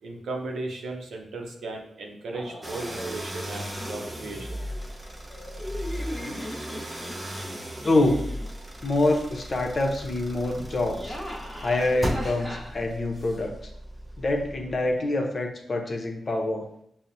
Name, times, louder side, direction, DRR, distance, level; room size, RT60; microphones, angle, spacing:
voice 1, 0.0-4.6, right 2 dB, 85° right, 2 dB, 0.6 m, -36 dB
sound 1, 2.3-3.1 3.8-4.4 5.3-8.5 8.9-9.5 10.7-13.4, equal, 5° left, 1.0 m, -40 dB
sound 2, 2.6-15.0, equal, 20° right, 0.6 m, -37 dB
voice 2, 7.8-8.3 8.8-11.2 11.6-13.6 14.2-16.7, left 2 dB, 50° left, 2 dB, 0.7 m, -25 dB
5.6 x 2.1 x 2.6 m, 0.71 s
cardioid pair, 65°, 0 cm